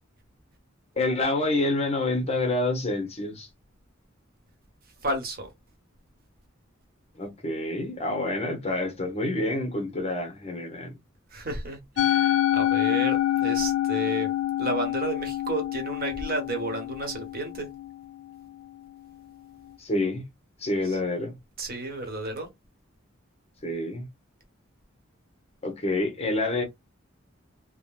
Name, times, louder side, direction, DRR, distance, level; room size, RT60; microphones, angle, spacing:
voice 1, 1.0-3.5 7.2-10.9 19.8-20.3 20.6-21.4 23.6-24.1 25.6-26.6, left 2 dB, 30° left, 0.9 m, -27 dB
voice 2, 5.0-5.5 11.3-14.3 14.6-17.7 20.9-21.0 21.6-22.5, right 2 dB, 50° right, 1.0 m, -32 dB
Musical instrument, 12.0-18.4, left 13 dB, 90° left, 0.4 m, -26 dB
3.6 x 2.1 x 2.3 m
head